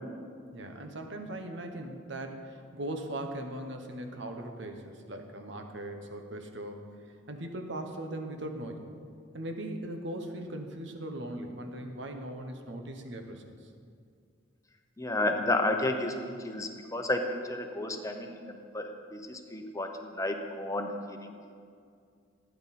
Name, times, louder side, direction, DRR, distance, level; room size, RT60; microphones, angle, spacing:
voice 1, 0.5-6.9 7.3-8.9 9.3-13.6, right 1 dB, 65° right, 5 dB, 1.2 m, -39 dB
voice 2, 15.0-21.4, left 2 dB, 15° left, 4 dB, 1.0 m, -32 dB
16.0 x 9.6 x 4.3 m, 2.3 s
head